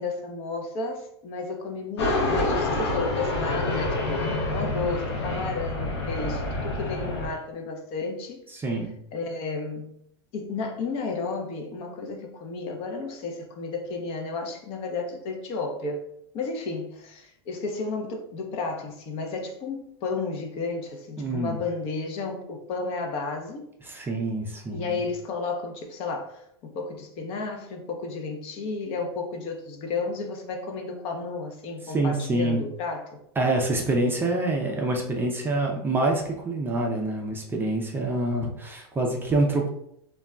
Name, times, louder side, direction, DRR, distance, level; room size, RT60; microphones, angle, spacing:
voice 1, 0.0-4.2 4.5-8.6 9.1-9.9 10.3-16.0 16.3-23.7 24.7-33.2, left 4 dB, 45° left, 3 dB, 0.6 m, -32 dB
sound 1, 2.0-7.3, left 2 dB, 85° left, 0.7 m, -27 dB
voice 2, 8.5-8.9 21.2-21.6 23.8-25.0 31.9-32.6 33.4-39.7, right 2 dB, 15° right, 0 dB, 0.4 m, -26 dB
2.2 x 2.1 x 3.6 m, 0.74 s
hypercardioid pair, 120°, 14 cm